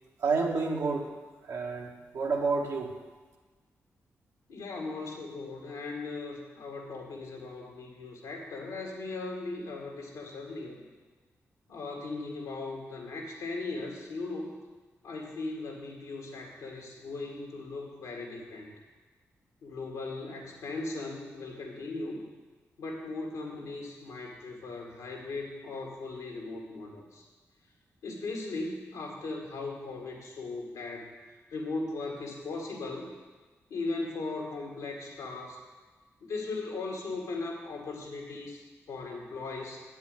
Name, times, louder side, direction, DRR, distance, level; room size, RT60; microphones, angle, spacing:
voice 1, 0.2-1.1 1.5-2.9, right 4 dB, 75° right, -1 dB, 1.5 m, -29 dB
voice 2, 4.5-10.8 11.7-14.6 15.0-18.7 19.6-22.2 22.8-27.2 28.0-31.1 31.5-33.1 33.7-35.6 36.2-39.8, left 3 dB, 90° left, -1 dB, 1.9 m, -38 dB
8.4 x 5.5 x 7.9 m, 1.3 s
supercardioid pair, 45°, 6 cm